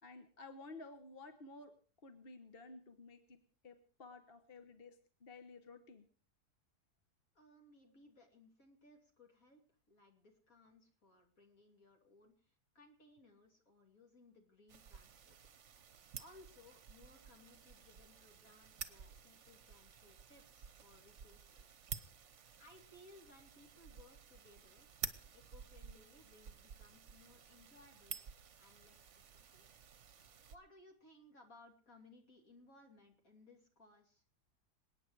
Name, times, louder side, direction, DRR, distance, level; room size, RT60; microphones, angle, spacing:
voice 1, 0.0-1.7 2.0-3.4 3.6-6.0, left 3 dB, 40° left, 8 dB, 1.3 m, -54 dB
voice 2, 7.3-15.4 16.2-21.8 22.3-24.9 25.3-28.2 28.6-29.2 29.5-29.7 30.5-34.2, left 2 dB, 55° left, 3 dB, 3.1 m, -63 dB
sound 1, 14.7-30.6, right 7 dB, 50° right, 1.2 m, -52 dB
27.0 x 9.2 x 4.7 m, 0.40 s
omnidirectional pair, 1.7 m